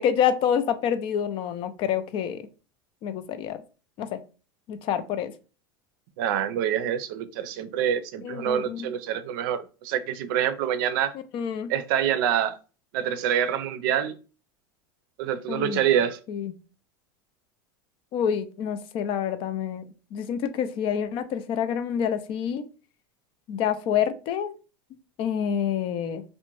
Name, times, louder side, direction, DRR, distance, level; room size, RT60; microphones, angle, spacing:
voice 1, 0.0-2.5 3.0-3.6 4.0-4.2 4.7-5.3 8.2-8.9 11.3-11.7 15.5-15.8 16.3-16.5 18.1-22.6 23.5-24.5 25.2-26.2, left 8 dB, 50° left, 11 dB, 0.4 m, -27 dB
voice 2, 6.2-11.1 11.7-12.6 12.9-14.2 15.2-16.2, right 9 dB, 70° right, 11 dB, 0.4 m, -26 dB
2.5 x 2.1 x 3.0 m, 0.33 s
supercardioid pair, 110°, 12 cm